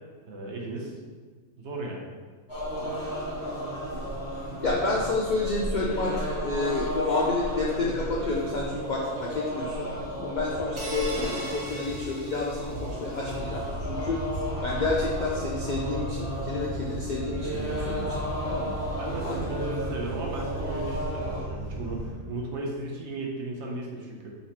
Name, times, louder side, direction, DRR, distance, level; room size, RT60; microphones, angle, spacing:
voice 1, 0.2-1.0 1.6-2.1 12.7-12.8 19.0-24.3, right 2 dB, 60° right, -1 dB, 1.0 m, -35 dB
sound 1, 2.5-21.4, equal, 25° left, 1.1 m, -34 dB
voice 2, 4.6-9.9 10.2-14.2 14.6-18.2 18.4-18.8 19.2-19.4, left 3 dB, 65° left, -3 dB, 0.4 m, -30 dB
sound 2, 10.8-13.2, right 1 dB, 30° right, 0.7 m, -39 dB
sound 3, 13.3-22.1, right 1 dB, ahead, 1.2 m, -36 dB
4.0 x 3.1 x 4.2 m, 1.5 s
omnidirectional pair, 1.4 m